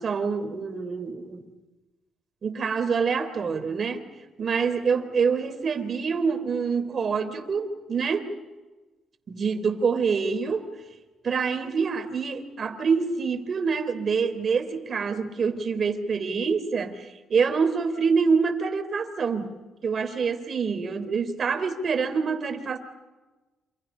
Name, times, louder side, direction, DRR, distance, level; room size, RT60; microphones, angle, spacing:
voice 1, 0.0-1.5 2.4-4.1 4.4-8.3 9.3-10.7 11.2-19.6 19.8-22.8, right 5 dB, 45° right, 8 dB, 3.6 m, -26 dB
28.0 x 27.5 x 5.7 m, 1.2 s
cardioid pair, 90°, 0 cm